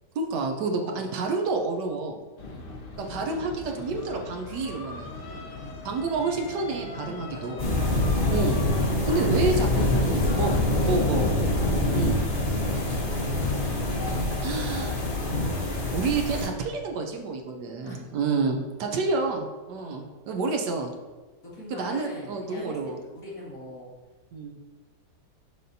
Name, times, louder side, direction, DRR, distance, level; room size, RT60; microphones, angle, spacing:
voice 1, 0.1-2.2 3.0-5.1 5.8-7.6 8.3-8.6 9.0-10.5 10.8-11.2 11.9-12.2 14.4-15.0 15.9-20.9 21.7-23.0 24.3-24.6, right 3 dB, 75° right, 3 dB, 1.3 m, -29 dB
voice 2, 0.8-1.1 2.4-2.7 5.2-5.9 7.0-8.3 9.0-11.3 12.8-13.6 17.8-18.3 19.8-20.1 21.4-22.8 23.1-23.9, left 1 dB, 50° left, -6 dB, 2.1 m, -42 dB
sound 1, 2.4-13.8, left 2 dB, 70° left, 0.5 m, -41 dB
sound 2, 7.6-16.5, left 1 dB, 35° left, 1.0 m, -25 dB
6.6 x 5.8 x 2.7 m, 1.3 s
omnidirectional pair, 2.0 m